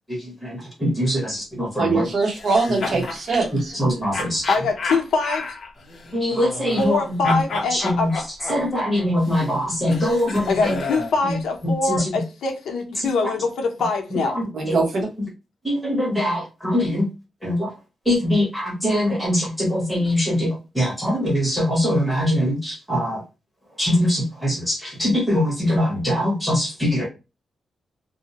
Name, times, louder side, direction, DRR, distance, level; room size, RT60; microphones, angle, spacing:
voice 1, 0.1-2.1 3.5-4.5 6.1-7.4 7.7-8.2 8.5-10.7 11.2-11.4 11.6-12.1 13.0-13.3 14.1-14.8 15.6-17.1 17.4-17.7 18.0-23.2 23.8-27.1, left 1 dB, ahead, -3 dB, 1.1 m, -23 dB
voice 2, 1.8-3.8 14.5-15.1, right 3 dB, 50° right, 0 dB, 0.9 m, -22 dB
sound 1, 2.4-3.2 4.1-7.0 7.2-11.2, left 3 dB, 45° left, 0.6 m, -31 dB
voice 3, 4.5-5.4 6.8-8.1 10.5-14.3, left 4 dB, 85° left, 2 dB, 0.7 m, -23 dB
2.6 x 2.0 x 2.8 m, 0.28 s
wide cardioid pair, 170°, 0 cm